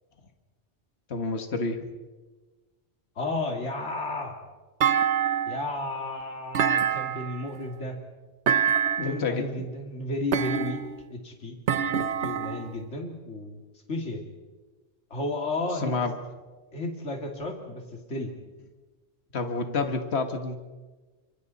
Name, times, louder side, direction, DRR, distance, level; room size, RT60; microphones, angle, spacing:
voice 1, 1.1-1.8 9.0-9.5 15.8-16.2 19.3-20.6, left 4 dB, 65° left, 6 dB, 1.8 m, -29 dB
voice 2, 3.2-4.4 5.5-8.0 9.0-10.8 11.1-11.6 11.9-13.6 13.9-14.2 15.1-16.0 16.7-17.8 18.1-18.3, left 2 dB, 85° left, 2 dB, 3.0 m, -33 dB
Thump thud, 4.8-5.7 6.5-7.5 8.5-9.2 10.3-11.0 11.7-12.7, right 8 dB, 75° right, 1.2 m, -25 dB
29.5 x 26.0 x 4.2 m, 1.3 s
omnidirectional pair, 1.2 m